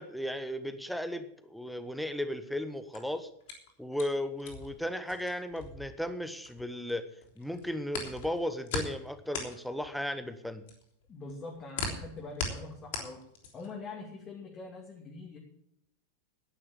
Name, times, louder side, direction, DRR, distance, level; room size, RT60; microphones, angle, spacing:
voice 1, 0.0-3.3 3.8-7.1 7.4-10.7, left 1 dB, ahead, 10 dB, 1.1 m, -35 dB
sound 1, 2.7-6.9 7.2-13.8, left 4 dB, 55° left, 3.3 m, -39 dB
voice 2, 11.1-13.2 13.5-15.4, left 3 dB, 25° left, 0 dB, 2.6 m, -44 dB
10.5 x 10.0 x 7.3 m, 0.73 s
figure-of-eight pair, 90°, 0 cm